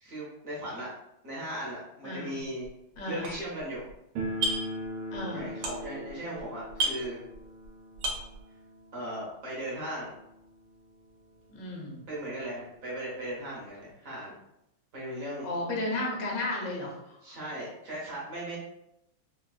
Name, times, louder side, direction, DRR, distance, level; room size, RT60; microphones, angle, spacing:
voice 1, 0.0-0.9 1.2-2.7 3.1-3.9 5.3-7.2 8.9-10.1 12.1-14.3 14.9-15.5 17.2-18.6, right 1 dB, 50° right, -6 dB, 1.3 m, -37 dB
voice 2, 2.0-2.4 3.0-3.3 5.1-5.5 11.5-12.0 15.4-17.4, left 2 dB, 60° left, -2 dB, 0.8 m, -34 dB
sound 1, 2.4-2.7 3.0-3.9 4.2-4.8 5.1-6.1 6.4-6.5 6.7-7.7 7.9-8.4, right 2 dB, 70° right, 1.1 m, -32 dB
sound 2, 4.2-10.9 11.1-11.2 11.5-11.6 12.3-12.4 12.7-13.9, equal, 85° right, 1.5 m, -40 dB
4.2 x 2.2 x 2.3 m, 0.83 s
omnidirectional pair, 2.2 m